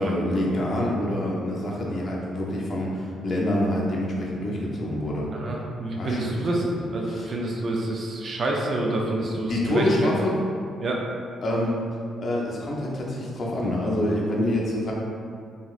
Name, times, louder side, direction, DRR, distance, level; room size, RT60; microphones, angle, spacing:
voice 1, 0.0-5.3 6.0-6.4 6.7-6.8 7.1-7.3 9.5-10.4 11.4-11.8 12.2-14.9, left 1 dB, 45° left, -3 dB, 0.6 m, -26 dB
voice 2, 5.3-6.7 6.9-10.1 10.8-11.0, right 2 dB, 50° right, -1 dB, 0.5 m, -27 dB
2.9 x 2.7 x 2.4 m, 2.4 s
cardioid pair, 90°, 0 cm